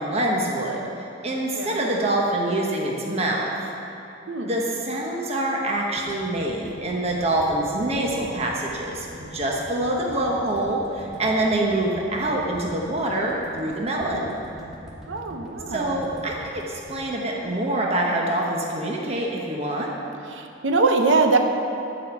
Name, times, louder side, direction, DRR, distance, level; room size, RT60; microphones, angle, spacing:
voice 1, 0.0-3.5 4.4-14.4 15.7-19.9, right 1 dB, 35° right, -2 dB, 1.0 m, -25 dB
voice 2, 4.3-4.6 15.1-16.0 20.3-21.4, right 3 dB, 80° right, 4 dB, 0.8 m, -22 dB
sound 1, 6.0-18.1, equal, ahead, 1.8 m, -44 dB
11.5 x 5.2 x 7.3 m, 2.8 s
head